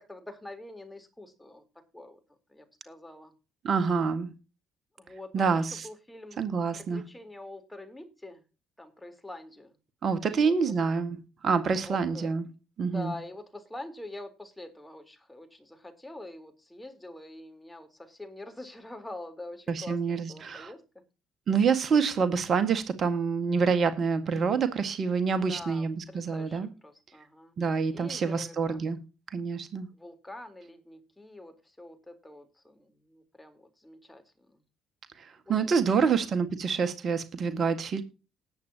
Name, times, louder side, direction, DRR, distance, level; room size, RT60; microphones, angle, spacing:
voice 1, 0.0-1.6 1.9-2.2 2.5-3.3 5.0-6.4 6.7-8.4 8.8-9.7 10.2-10.7 11.7-12.3 12.8-20.8 25.5-28.9 29.9-34.6 35.5-36.2, left 2 dB, 10° left, 5 dB, 3.8 m, -45 dB
voice 2, 3.6-4.3 5.3-5.9 6.4-7.0 10.0-11.2 11.4-12.5 12.8-13.1 19.7-20.7 21.5-26.7 27.6-29.0 29.3-29.9 35.2-38.0, right 5 dB, 50° right, 10 dB, 1.7 m, -27 dB
19.0 x 8.0 x 2.9 m, 0.32 s
hypercardioid pair, 50°, 0 cm